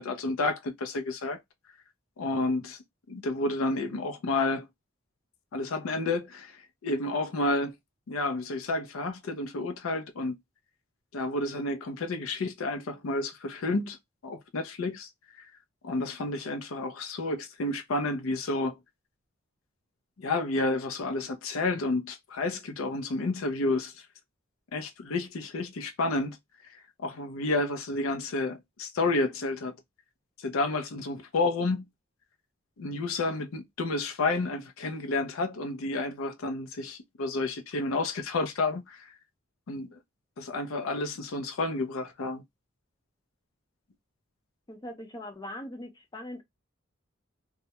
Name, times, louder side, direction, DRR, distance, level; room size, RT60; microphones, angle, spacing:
voice 1, 0.0-1.4 2.2-2.8 3.1-4.7 5.5-7.7 8.1-10.4 11.1-14.0 14.2-15.1 15.4-15.5 15.8-18.8 20.2-23.9 24.7-26.4 27.0-29.7 30.4-31.9 32.8-39.0 39.7-40.0 40.4-42.4, left 2 dB, 80° left, 0.5 m, -30 dB
voice 2, 44.7-46.4, left 1 dB, 20° left, 0.5 m, -41 dB
2.3 x 2.0 x 2.8 m
head